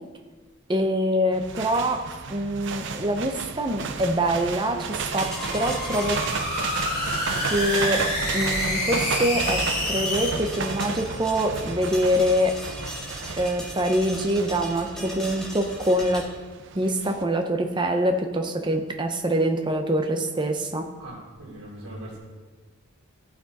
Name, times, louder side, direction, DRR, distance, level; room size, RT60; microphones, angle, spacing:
voice 1, 0.7-2.0 2.3-6.2 7.3-8.0 8.3-12.6 13.4-16.3 16.7-20.9, equal, 20° right, 4 dB, 0.7 m, -25 dB
sound 1, 1.3-17.2, right 5 dB, 55° right, 0.6 m, -33 dB
sound 2, 4.9-10.3, left 1 dB, 40° left, 2.7 m, -28 dB
sound 3, 5.2-16.2, equal, 5° left, 1.9 m, -39 dB
voice 2, 21.0-22.2, right 1 dB, 80° right, -5 dB, 3.3 m, -40 dB
14.5 x 6.0 x 4.2 m, 1.4 s
head